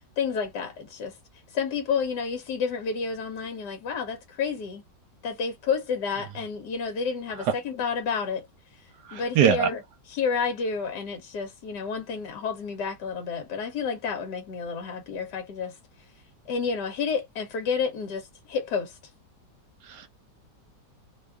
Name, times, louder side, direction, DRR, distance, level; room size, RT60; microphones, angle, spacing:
voice 1, 0.2-1.2 1.5-4.8 5.2-8.5 9.1-9.8 10.1-15.8 16.5-19.0, left 5 dB, 75° left, 1.3 m, -30 dB
voice 2, 9.1-9.7 19.8-20.1, right 8 dB, 80° right, 1.2 m, -22 dB
3.1 x 2.3 x 3.4 m
omnidirectional pair, 1.9 m